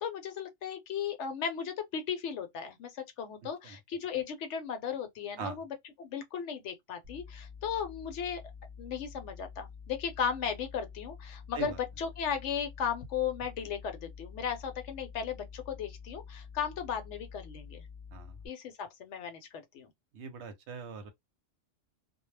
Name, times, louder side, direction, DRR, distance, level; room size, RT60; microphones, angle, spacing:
voice 1, 0.0-5.7 6.0-8.4 8.8-17.8 18.4-19.9, left 7 dB, 70° left, 0.9 m, -36 dB
sound 1, 7.0-18.5, left 6 dB, 40° right, 0.5 m, -48 dB
voice 2, 20.1-21.1, right 5 dB, 70° right, 0.8 m, -41 dB
2.2 x 2.0 x 3.1 m
omnidirectional pair, 1.3 m